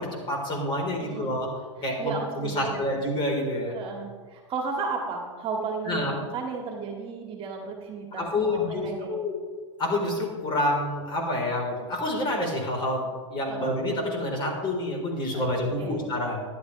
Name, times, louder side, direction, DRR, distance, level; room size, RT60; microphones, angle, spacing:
voice 1, 0.0-1.5 1.8-3.8 5.8-6.1 8.2-9.3 9.8-16.4, left 1 dB, 30° left, 0 dB, 3.8 m, -28 dB
voice 2, 1.0-1.4 1.8-2.9 3.7-9.2 13.5-13.7 15.3-15.5 15.8-16.1, right 4 dB, 35° right, 1 dB, 1.9 m, -34 dB
13.5 x 11.0 x 3.2 m, 1.5 s
hypercardioid pair, 105°, 16 cm